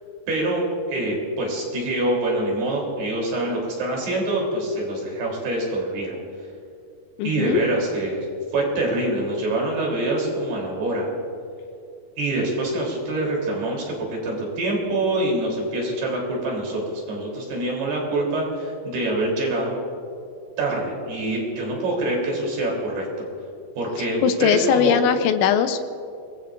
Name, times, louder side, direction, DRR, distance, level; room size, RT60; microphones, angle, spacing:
voice 1, 0.3-6.2 7.2-8.3 8.5-11.1 12.2-19.8 20.6-23.3 23.8-25.0, right 2 dB, 60° right, -2 dB, 5.3 m, -25 dB
voice 2, 7.2-7.6 24.2-25.8, left 8 dB, 80° left, 8 dB, 3.0 m, -20 dB
28.0 x 20.0 x 2.6 m, 2.5 s
omnidirectional pair, 5.4 m